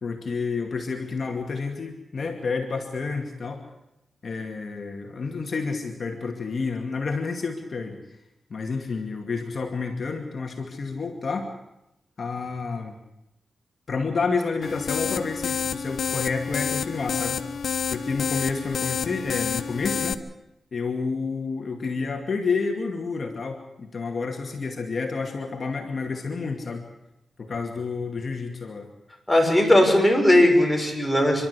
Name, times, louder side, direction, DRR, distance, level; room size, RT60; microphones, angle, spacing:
voice 1, 0.0-3.6 4.2-8.0 8.5-11.5 12.2-13.0 13.9-17.4 17.9-20.2 20.7-26.8 27.4-28.9, left 4 dB, 55° left, 3 dB, 2.4 m, -29 dB
sound 1, 14.6-20.1, left 7 dB, 80° left, 1.0 m, -29 dB
voice 2, 29.3-31.5, left 1 dB, 5° left, 1 dB, 6.7 m, -18 dB
28.5 x 12.5 x 8.3 m, 0.91 s
cardioid pair, 80°, 0 cm